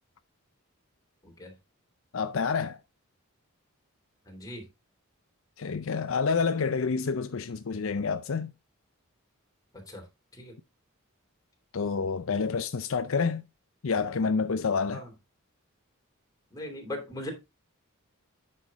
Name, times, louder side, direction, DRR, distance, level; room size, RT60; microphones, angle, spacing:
voice 1, 2.1-2.8 5.6-8.5 11.7-13.4 13.8-15.0, left 5 dB, 65° left, 0.5 m, -28 dB
voice 2, 4.3-4.6 9.9-10.0 10.4-10.5 14.9-15.1 16.5-17.3, left 1 dB, 15° left, 2.9 m, -39 dB
9.1 x 5.7 x 3.6 m
head